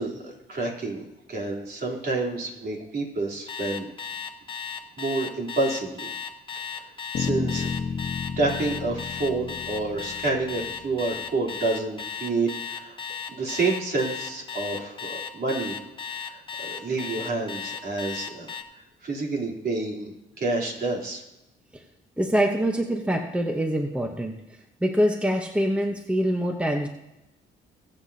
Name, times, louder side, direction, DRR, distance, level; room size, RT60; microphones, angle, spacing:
voice 1, 0.0-3.9 5.0-6.1 7.2-7.7 8.0-13.0 13.3-15.7 16.2-18.5 19.0-21.2, right 3 dB, 50° right, -3 dB, 3.4 m, -29 dB
Alarm, 3.5-18.6, left 7 dB, 25° left, 1.1 m, -35 dB
sound 1, 7.1-11.1, left 6 dB, 60° left, 1.1 m, -32 dB
voice 2, 22.2-24.4 24.8-26.9, equal, 5° right, 4 dB, 1.0 m, -24 dB
20.5 x 7.6 x 2.8 m, 0.93 s
cardioid pair, 90°, 20 cm